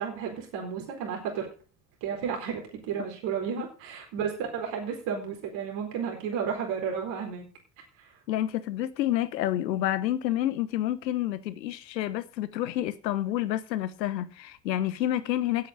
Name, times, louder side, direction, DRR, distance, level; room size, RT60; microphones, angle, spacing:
voice 1, 0.0-1.5 2.0-7.5, right 7 dB, 65° right, 4.4 m, -32 dB
voice 2, 8.3-15.7, left 13 dB, 85° left, 1.2 m, -29 dB
11.0 x 8.7 x 6.4 m
hypercardioid pair, 65°, 49 cm